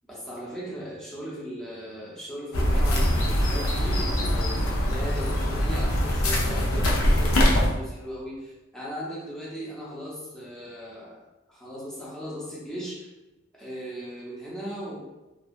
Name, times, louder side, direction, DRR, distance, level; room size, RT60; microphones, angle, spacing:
voice 1, 0.1-11.2 11.5-13.1 13.6-15.0, equal, 5° left, -7 dB, 0.6 m, -37 dB
sound 1, 2.5-7.7, equal, 80° left, 0.5 m, -23 dB
2.6 x 2.3 x 2.4 m, 1.1 s
head